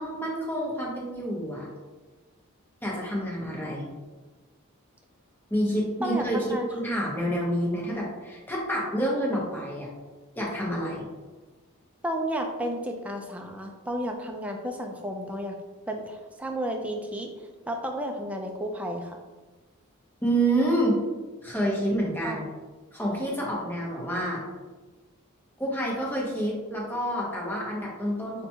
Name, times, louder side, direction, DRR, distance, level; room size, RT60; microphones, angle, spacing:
voice 1, 0.0-1.7 2.8-3.9 5.5-9.9 10.4-11.1 20.2-21.0 21.4-22.4 22.9-24.4 25.6-28.5, right 1 dB, 10° left, -4 dB, 0.8 m, -28 dB
voice 2, 6.0-6.7 12.0-15.6 15.9-17.3 17.7-19.2 22.2-22.5, equal, 5° right, 2 dB, 0.3 m, -32 dB
5.7 x 2.2 x 2.7 m, 1.3 s
head